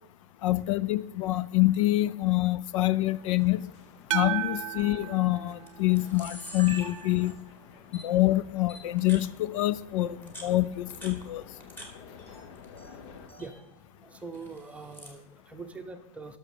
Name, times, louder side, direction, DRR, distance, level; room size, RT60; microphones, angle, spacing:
voice 1, 0.4-3.7 4.1-7.4 7.9-11.5, left 17 dB, 75° left, 0.5 m, -26 dB
sound 1, 3.0-13.3, left 5 dB, 60° left, 1.2 m, -52 dB
sound 2, 4.1-6.4, right 13 dB, 75° right, 0.6 m, -34 dB
Camera, 4.8-5.0 5.7-5.8 5.9-7.5 7.9-8.0 8.7-9.3 10.1-11.9 12.2-12.9 13.2-13.5 14.3-15.2, right 1 dB, 10° left, 1.9 m, -45 dB
voice 2, 13.4-13.7 14.0-16.4, right 4 dB, 10° right, 0.8 m, -43 dB
12.0 x 6.4 x 5.0 m
supercardioid pair, 155°, 17 cm